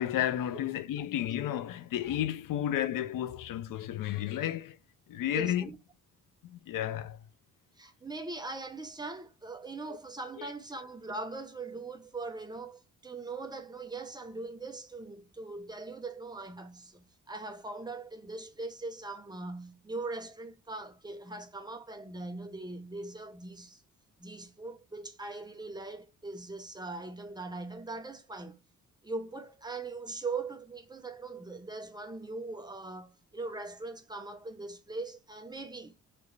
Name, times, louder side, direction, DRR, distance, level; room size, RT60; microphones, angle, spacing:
voice 1, 0.0-4.8 5.1-5.7 6.4-7.2 10.4-10.5, left 11 dB, 85° left, 0.6 m, -32 dB
voice 2, 5.3-5.8 7.8-23.8 24.2-28.6 29.0-36.0, right 3 dB, 15° right, 0.8 m, -41 dB
4.1 x 3.2 x 3.2 m
cardioid pair, 140°, 32 cm